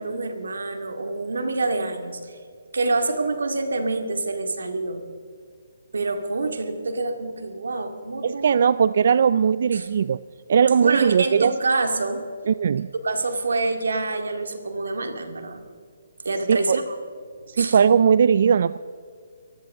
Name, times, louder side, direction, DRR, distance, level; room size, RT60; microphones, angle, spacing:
voice 1, 0.0-2.4 2.7-5.0 5.9-8.6 9.7-9.9 10.8-12.3 13.0-15.6 16.2-17.0 17.6-17.8, right 3 dB, 85° right, 6 dB, 2.1 m, -26 dB
voice 2, 8.2-10.2 10.5-11.5 12.5-12.9 16.5-16.8 17.5-18.8, right 7 dB, 55° right, 16 dB, 0.3 m, -19 dB
23.0 x 15.5 x 3.7 m, 2.2 s
hypercardioid pair, 160°, 0 cm